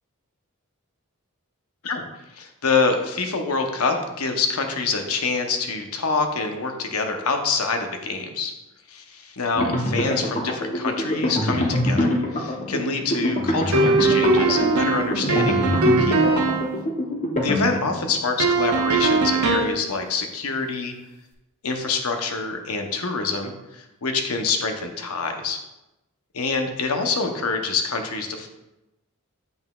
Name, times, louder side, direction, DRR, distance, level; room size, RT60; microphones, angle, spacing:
voice 1, 2.3-8.5 8.9-16.4 17.4-20.9 21.6-25.6 26.3-28.5, left 4 dB, 80° left, 5 dB, 0.8 m, -26 dB
sound 1, 9.6-18.1, left 1 dB, 30° left, 0.8 m, -25 dB
sound 2, 13.7-16.7 18.4-19.8, right 3 dB, 75° right, 0.7 m, -20 dB
8.0 x 5.6 x 2.3 m, 0.95 s
head